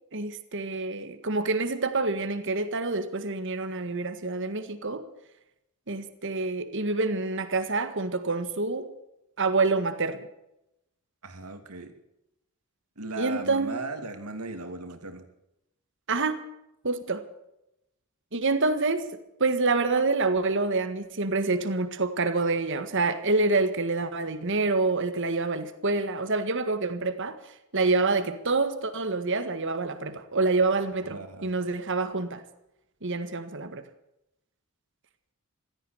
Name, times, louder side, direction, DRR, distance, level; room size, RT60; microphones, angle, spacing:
voice 1, 0.1-5.0 5.9-8.9 9.4-10.2 13.2-13.8 16.1-16.4 16.8-17.2 18.3-19.0 19.4-27.4 27.7-32.4 33.0-33.8, right 3 dB, 55° right, 1.7 m, -27 dB
voice 2, 11.2-11.9 13.0-15.3 31.1-31.5, right 3 dB, 85° right, 2.7 m, -37 dB
16.5 x 13.5 x 6.6 m
head